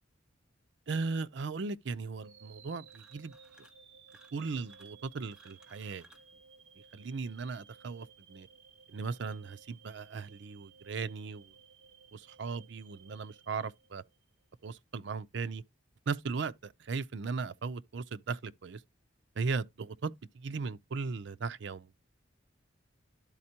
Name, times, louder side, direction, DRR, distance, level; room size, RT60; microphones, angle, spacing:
voice 1, 0.9-3.3 4.3-6.1 6.9-8.5 8.9-11.5 12.1-14.0 14.6-15.6 16.1-18.8 19.4-22.0, right 4 dB, 65° right, 0.5 m, -37 dB
sound 1, 2.2-14.3, right 6 dB, 80° right, 0.8 m, -58 dB
sound 2, 2.9-3.8 4.1-6.3, equal, 5° right, 1.1 m, -62 dB
12.5 x 4.3 x 2.8 m
head